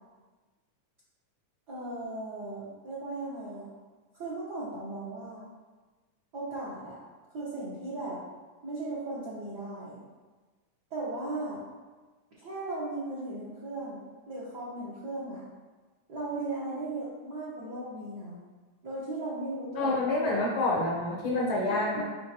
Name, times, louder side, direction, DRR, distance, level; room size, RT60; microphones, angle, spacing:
voice 1, 1.7-3.7 4.1-5.4 6.3-7.0 7.3-8.2 8.6-10.0 10.9-11.6 12.4-14.0 14.3-15.4 16.1-18.4 18.8-20.0 21.7-22.0, right 2 dB, 60° right, -8 dB, 1.1 m, -37 dB
voice 2, 19.8-22.0, left 2 dB, 65° left, -3 dB, 1.3 m, -27 dB
6.4 x 5.2 x 2.8 m, 1.3 s
omnidirectional pair, 3.3 m